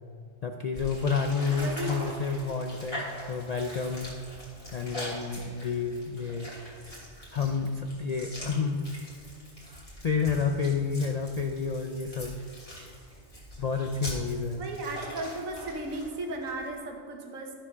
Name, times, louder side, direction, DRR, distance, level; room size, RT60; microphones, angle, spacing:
voice 1, 0.4-4.2 4.7-6.5 7.3-8.9 9.6-12.4 13.6-14.6, left 5 dB, 75° left, 4 dB, 0.3 m, -30 dB
sound 1, 0.7-16.7, equal, 25° left, 3.0 m, -43 dB
voice 2, 1.6-2.0 14.6-17.5, right 2 dB, 80° right, 2 dB, 1.6 m, -35 dB
13.5 x 4.8 x 6.0 m, 2.1 s
omnidirectional pair, 1.4 m